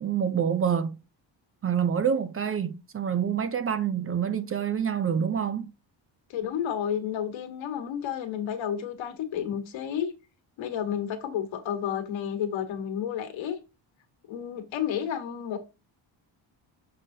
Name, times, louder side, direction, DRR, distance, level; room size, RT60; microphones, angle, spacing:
voice 1, 0.0-1.0 1.6-5.7, right 8 dB, 30° right, 0.5 m, -27 dB
voice 2, 6.3-10.1 10.6-13.6 14.3-15.6, left 9 dB, 75° left, 1.6 m, -31 dB
6.8 x 5.4 x 2.7 m
cardioid pair, 155°, 46 cm